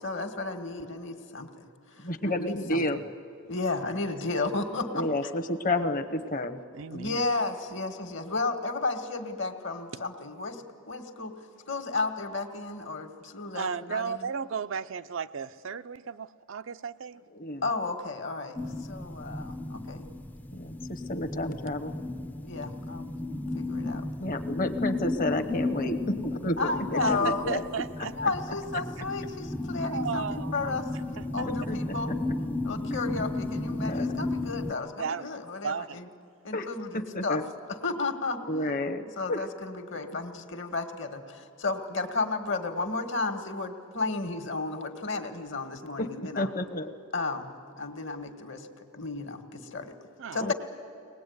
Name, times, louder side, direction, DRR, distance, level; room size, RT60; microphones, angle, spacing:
voice 1, 0.0-2.8 3.4-5.3 6.9-11.3 11.7-14.3 17.6-18.6 18.9-20.1 22.4-23.1 23.5-24.1 26.6-27.4 28.2-30.8 31.3-32.1 32.6-36.1 36.4-37.4 37.7-38.4 39.2-46.5 47.1-50.0 50.3-50.5, left 3 dB, 55° left, 7 dB, 1.7 m, -33 dB
voice 2, 2.0-3.0 4.9-6.6 17.3-17.7 20.5-21.9 24.2-27.6 31.4-32.0 33.8-34.1 36.5-36.7 37.1-37.4 38.5-39.4 46.0-46.1 46.4-46.9 50.4-50.5, left 1 dB, 40° left, 9 dB, 1.1 m, -30 dB
voice 3, 6.7-7.3 9.9-10.0 13.5-17.2 27.0-28.1 29.9-30.8 31.2-31.5 35.0-35.3 35.6-36.0 50.2-50.5, right 6 dB, 60° right, 12 dB, 0.5 m, -35 dB
sound 1, 18.6-34.7, left 2 dB, 10° left, 0.5 m, -34 dB
23.5 x 19.5 x 9.4 m, 2.4 s
head